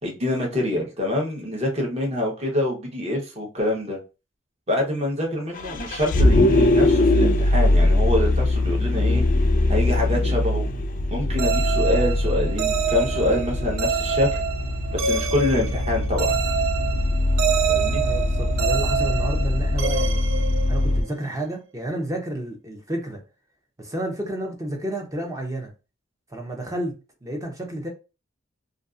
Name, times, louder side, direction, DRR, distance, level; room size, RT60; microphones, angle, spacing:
voice 1, 0.0-4.0 4.7-9.2 9.7-10.7 11.1-14.4 14.9-16.4 17.7-18.0, left 1 dB, 35° right, 0.9 m, -25 dB
Vehicle, 5.5-21.0, left 1 dB, 45° left, 0.3 m, -22 dB
sound 1, 11.4-21.2, right 7 dB, 80° right, 0.3 m, -27 dB
voice 2, 18.0-20.2 20.7-23.2 23.8-25.7 26.3-26.9 27.2-27.9, right 1 dB, 15° right, 0.5 m, -30 dB
2.5 x 2.4 x 2.4 m
head